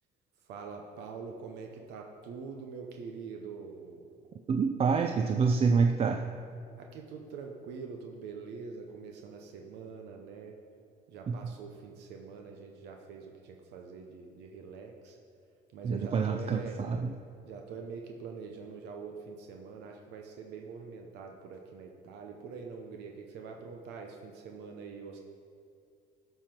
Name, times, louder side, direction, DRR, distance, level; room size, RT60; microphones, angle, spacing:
voice 1, 0.5-4.2 6.8-10.5 11.1-15.2 15.7-16.8 17.4-25.2, right 5 dB, 85° right, 2 dB, 0.8 m, -44 dB
voice 2, 4.5-6.3 11.3-11.5 15.8-17.2, right 5 dB, 35° right, 6 dB, 0.5 m, -27 dB
12.5 x 5.8 x 4.5 m, 2.4 s
cardioid pair, 110°, 17 cm